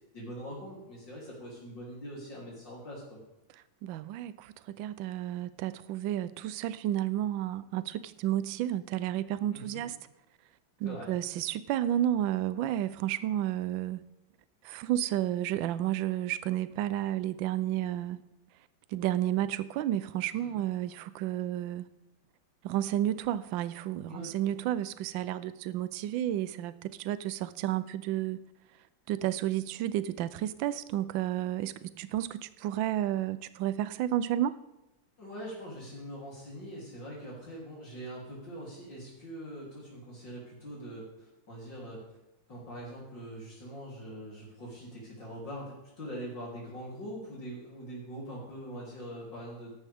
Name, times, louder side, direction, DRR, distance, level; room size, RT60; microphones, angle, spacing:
voice 1, 0.1-3.2 9.5-9.9 10.8-11.1 20.4-20.5 24.1-24.3 35.2-42.0 42.5-49.7, equal, 60° left, -5 dB, 3.9 m, -43 dB
voice 2, 3.8-9.9 10.8-14.0 14.6-18.2 18.9-21.8 22.6-28.4 29.1-34.6, right 12 dB, 80° right, 15 dB, 1.3 m, -31 dB
14.5 x 11.0 x 3.5 m, 0.96 s
omnidirectional pair, 2.2 m